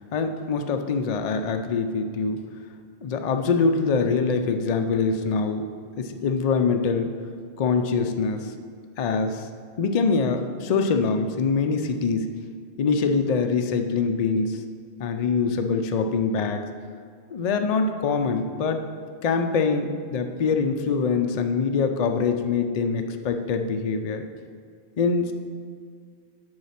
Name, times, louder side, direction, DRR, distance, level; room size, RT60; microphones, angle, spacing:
voice 1, 0.1-2.4 3.0-5.7 6.0-7.1 7.6-8.5 9.0-9.5 9.8-12.3 12.8-14.6 15.0-16.7 17.3-18.8 19.2-24.2 25.0-25.3, left 5 dB, 45° left, 6 dB, 0.5 m, -24 dB
9.5 x 4.2 x 5.7 m, 2.1 s
omnidirectional pair, 1.1 m